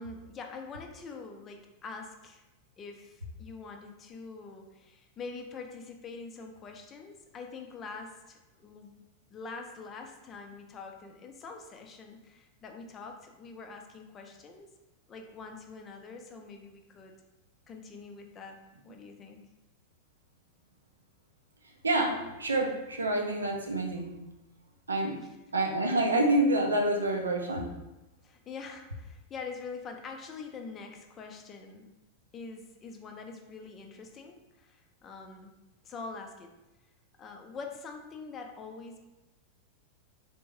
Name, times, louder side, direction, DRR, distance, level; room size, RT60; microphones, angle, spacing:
voice 1, 0.0-2.4 2.8-14.7 15.1-17.2 17.7-18.6 18.8-19.5 25.2-25.4 28.2-31.9 32.3-35.5 35.8-36.5 37.2-39.0, left 4 dB, 25° left, 3 dB, 0.4 m, -44 dB
voice 2, 21.8-24.1 24.9-25.2 25.5-27.7, right 1 dB, 75° right, 2 dB, 0.5 m, -27 dB
3.4 x 2.6 x 3.0 m, 0.99 s
figure-of-eight pair, 90°, 0 cm